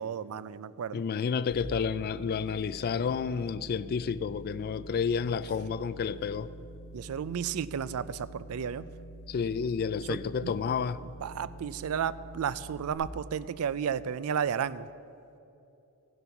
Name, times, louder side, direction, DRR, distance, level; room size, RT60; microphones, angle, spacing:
voice 1, 0.0-1.0 6.9-8.8 10.1-10.6 11.2-14.9, right 7 dB, 70° right, 0.4 m, -33 dB
voice 2, 0.9-6.5 9.3-11.0, left 6 dB, 45° left, 0.3 m, -30 dB
sound 1, 1.5-12.9, right 1 dB, 60° left, 1.3 m, -47 dB
15.0 x 8.0 x 5.8 m
head